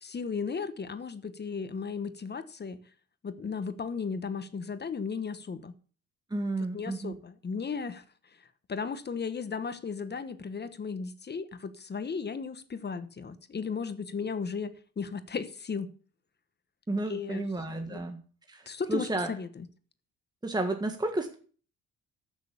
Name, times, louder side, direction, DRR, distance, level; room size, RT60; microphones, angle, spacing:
voice 1, 0.0-2.8 3.2-5.7 6.7-8.0 8.7-15.9 17.1-17.5 17.9-18.0 18.7-19.7, left 5 dB, 35° left, 1.1 m, -35 dB
voice 2, 6.3-7.2 16.9-18.2 18.5-19.3 20.4-21.4, right 2 dB, 15° right, 1.7 m, -32 dB
14.0 x 6.4 x 7.0 m
cardioid pair, 90°, 30 cm